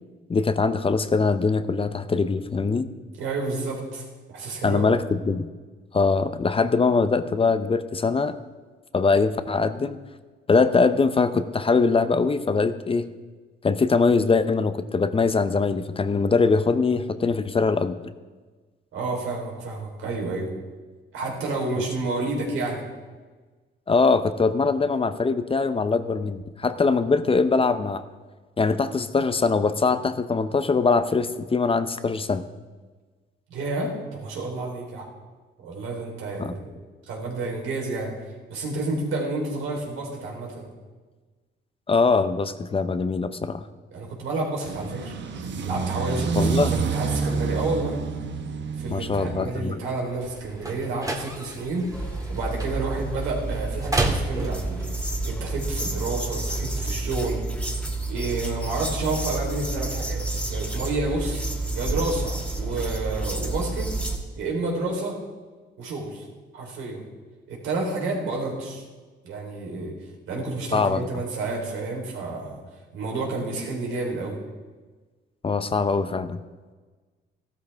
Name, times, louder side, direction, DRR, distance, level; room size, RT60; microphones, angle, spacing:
voice 1, 0.3-2.9 4.6-5.5 5.9-8.4 8.9-10.0 10.5-13.1 13.6-18.0 23.9-28.0 28.6-32.4 36.4-36.5 41.9-43.7 46.3-46.8 48.9-49.8 70.7-71.0 75.4-76.4, left 4 dB, 30° left, 11 dB, 0.7 m, -22 dB
voice 2, 3.2-4.9 18.9-20.5 21.1-22.8 33.5-35.1 35.6-36.8 37.1-38.1 38.5-40.7 43.9-45.1 45.6-48.0 48.8-57.4 58.1-60.2 60.5-61.4 61.7-63.9 64.4-65.2 65.8-66.2 66.5-67.1 67.5-68.8 69.2-70.0 70.3-72.6 72.9-74.4, right 2 dB, 85° right, -1 dB, 3.8 m, -30 dB
sound 1, 44.6-49.6, right 5 dB, 65° right, 1.2 m, -28 dB
sound 2, 50.0-55.0, right 2 dB, 15° right, 1.8 m, -32 dB
sound 3, 51.9-64.2, right 2 dB, 5° left, 2.5 m, -29 dB
14.5 x 13.0 x 3.5 m, 1.3 s
cardioid pair, 90°, 20 cm